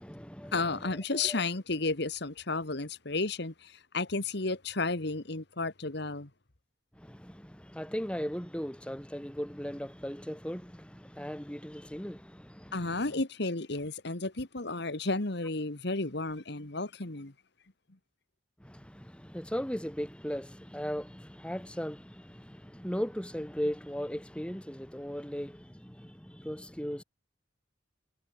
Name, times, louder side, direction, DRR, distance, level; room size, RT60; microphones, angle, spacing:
voice 1, 0.0-1.4 7.0-13.0 18.6-27.0, equal, 5° left, 2.7 m, -38 dB
voice 2, 0.5-6.3 12.7-17.3, left 3 dB, 60° left, 1.9 m, -32 dB
head